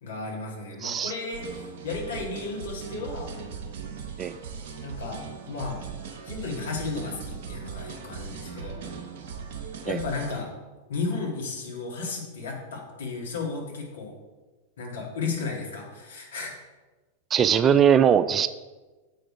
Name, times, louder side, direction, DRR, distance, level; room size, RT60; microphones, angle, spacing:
voice 1, 0.0-3.3 4.8-5.8 6.2-8.8 9.8-10.5 10.9-14.1 14.8-16.5, left 4 dB, 65° left, -2 dB, 2.1 m, -34 dB
sound 1, 1.3-10.4, right 6 dB, 50° right, 1.0 m, -39 dB
voice 2, 17.3-18.5, right 8 dB, 25° right, 13 dB, 0.3 m, -20 dB
7.6 x 5.0 x 4.8 m, 1.2 s
figure-of-eight pair, 90°, 0 cm